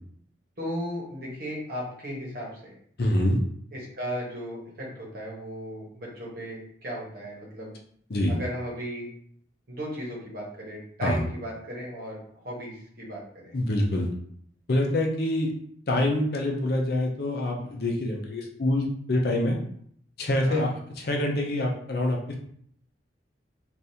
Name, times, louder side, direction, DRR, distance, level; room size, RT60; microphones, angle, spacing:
voice 1, 0.6-2.8 3.7-7.7 8.3-9.1 9.7-13.5 20.5-20.7, equal, 55° right, -4 dB, 1.2 m, -36 dB
voice 2, 3.0-3.4 8.1-8.4 11.0-11.2 13.5-14.1 14.7-15.5 15.9-19.6 20.2-20.7 21.0-22.3, left 1 dB, 55° left, 1 dB, 0.6 m, -25 dB
3.5 x 2.5 x 2.8 m, 0.64 s
head